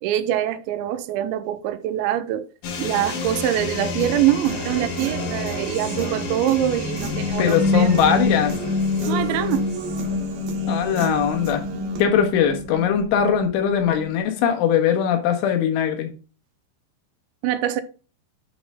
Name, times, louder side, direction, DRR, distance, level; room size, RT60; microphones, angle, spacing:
voice 1, 0.0-2.5 2.8-7.9 9.1-9.7 17.4-17.8, right 12 dB, 90° right, 3.0 m, -24 dB
sound 1, 2.6-10.2, left 5 dB, 65° left, 1.9 m, -32 dB
Human voice / Guitar, 4.0-12.0, right 5 dB, 65° right, 2.7 m, -34 dB
sound 2, 6.6-14.4, left 3 dB, 10° right, 1.8 m, -26 dB
voice 2, 7.4-8.6 10.7-11.6 12.0-16.1, left 8 dB, 90° left, 3.9 m, -20 dB
9.0 x 5.1 x 3.6 m
omnidirectional pair, 5.3 m